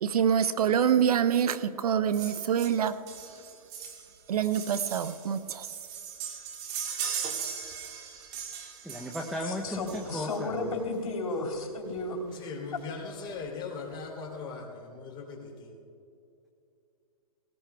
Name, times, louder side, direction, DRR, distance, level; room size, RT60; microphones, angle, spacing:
voice 1, 0.0-2.9 4.3-5.7, right 8 dB, 80° right, 14 dB, 0.7 m, -26 dB
sound 1, 2.1-10.5 11.5-11.6 12.0-12.1 12.3-12.4 12.8-13.4 13.9-14.0, right 7 dB, 35° right, 1.7 m, -39 dB
voice 2, 8.5-10.8, left 1 dB, ahead, 2 dB, 0.6 m, -36 dB
voice 3, 9.4-12.2 12.7-12.8, left 3 dB, 85° left, -1 dB, 3.3 m, -33 dB
voice 4, 12.4-15.7, left 4 dB, 25° left, -1 dB, 3.0 m, -39 dB
20.5 x 18.5 x 2.3 m, 2.6 s
hypercardioid pair, 140°, 19 cm